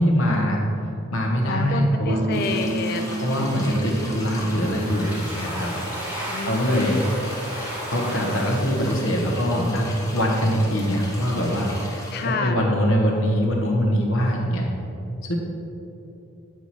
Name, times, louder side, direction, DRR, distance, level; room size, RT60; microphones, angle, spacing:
voice 1, 0.0-2.4 3.2-5.7 6.4-7.0 7.9-9.9 10.1-14.7 15.2-15.3, equal, 75° left, 0 dB, 1.2 m, -23 dB
voice 2, 1.4-3.1 6.3-7.0 12.1-12.6, left 4 dB, 45° left, 6 dB, 0.4 m, -28 dB
sound 1, 2.1-5.2, right 2 dB, 30° right, 0.3 m, -30 dB
sound 2, 2.3-12.3, left 1 dB, 15° left, 1.0 m, -38 dB
Domestic sounds home sounds, 4.4-10.0, equal, 10° right, 1.0 m, -35 dB
9.0 x 4.6 x 4.2 m, 2.8 s
head